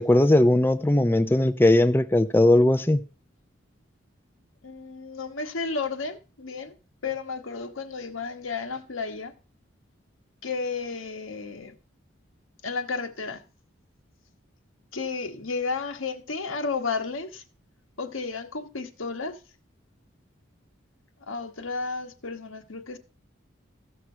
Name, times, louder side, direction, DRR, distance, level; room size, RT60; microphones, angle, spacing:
voice 1, 0.0-3.0, left 1 dB, 10° left, 0.4 m, -19 dB
voice 2, 4.6-6.7 7.0-9.3 10.4-11.7 12.6-13.4 14.9-17.4 18.0-19.4 21.3-23.0, left 4 dB, 90° left, 1.3 m, -32 dB
15.0 x 6.1 x 4.4 m
head